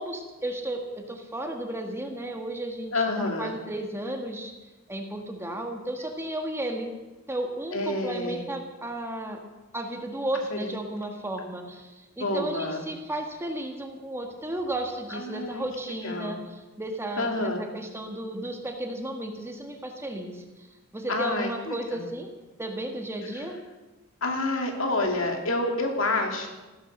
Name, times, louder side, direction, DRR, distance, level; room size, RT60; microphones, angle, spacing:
voice 1, 0.0-4.5 4.9-6.9 7.3-9.4 9.7-20.7 20.9-22.3 22.6-23.6, right 1 dB, 10° right, 3 dB, 1.7 m, -34 dB
voice 2, 2.9-3.5 7.7-8.4 10.5-10.6 12.2-12.8 15.1-15.7 16.0-16.4 17.2-17.6 21.1-22.0 23.4-23.5 24.2-26.5, left 2 dB, 70° left, 3 dB, 2.6 m, -28 dB
15.0 x 13.5 x 6.6 m, 1.2 s
head